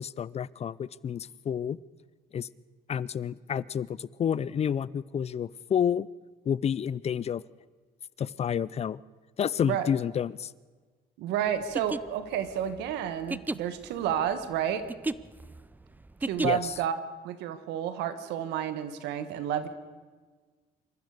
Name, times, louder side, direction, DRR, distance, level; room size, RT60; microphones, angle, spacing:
voice 1, 0.0-1.8 2.3-2.5 2.9-6.1 6.5-7.4 8.2-9.0 9.4-10.5 16.4-16.7, left 8 dB, 40° left, 21 dB, 0.6 m, -29 dB
voice 2, 11.2-14.9 16.2-17.0 17.2-19.7, right 10 dB, 90° right, 11 dB, 1.9 m, -30 dB
sound 1, 11.6-16.8, right 2 dB, 10° right, 0.5 m, -35 dB
26.5 x 14.5 x 6.8 m, 1.4 s
cardioid pair, 110°, 17 cm